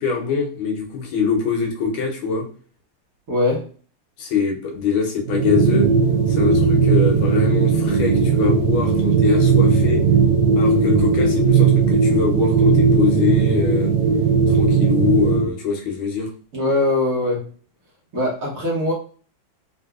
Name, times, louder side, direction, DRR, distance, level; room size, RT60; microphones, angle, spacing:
voice 1, 0.0-2.5 4.2-5.9 6.3-10.0 10.5-13.9 14.5-16.3, left 6 dB, 85° left, 2 dB, 1.6 m, -23 dB
voice 2, 3.3-3.7 16.5-17.5 18.1-18.9, left 2 dB, 55° right, -4 dB, 1.2 m, -21 dB
sound 1, 5.3-15.5, right 5 dB, 80° right, 0.7 m, -17 dB
3.7 x 2.6 x 2.3 m, 0.41 s
omnidirectional pair, 2.2 m